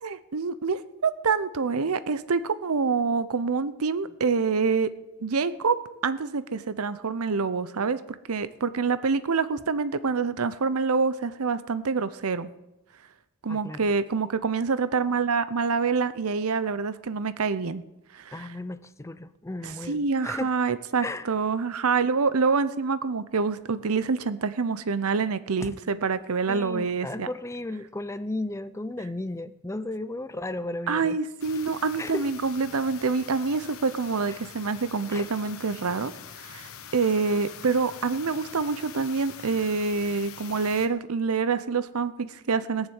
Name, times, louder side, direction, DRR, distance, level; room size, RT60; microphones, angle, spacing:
voice 1, 0.0-4.9 5.2-5.8 6.0-8.0 8.3-12.5 13.4-17.8 18.1-18.5 19.6-27.3 30.9-36.1 36.4-42.9, right 4 dB, 80° right, 14 dB, 0.7 m, -26 dB
voice 2, 13.5-13.9 18.3-20.5 21.0-21.3 25.6-25.8 26.5-31.2 32.0-32.3 34.3-34.4 35.1-35.3, left 2 dB, 15° left, 14 dB, 0.5 m, -35 dB
sound 1, 31.4-40.9, left 8 dB, 75° left, 1.2 m, -44 dB
17.5 x 7.3 x 8.2 m, 0.95 s
head